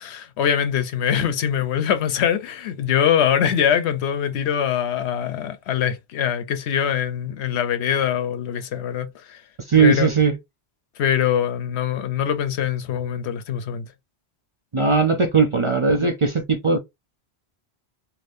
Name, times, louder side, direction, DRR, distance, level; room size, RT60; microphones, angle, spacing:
voice 1, 0.0-9.4 9.8-10.1 11.0-13.9, left 9 dB, 85° left, 0.9 m, -23 dB
voice 2, 9.7-10.4 14.7-16.8, right 5 dB, 40° right, 0.4 m, -18 dB
2.7 x 2.6 x 3.4 m
omnidirectional pair, 1.1 m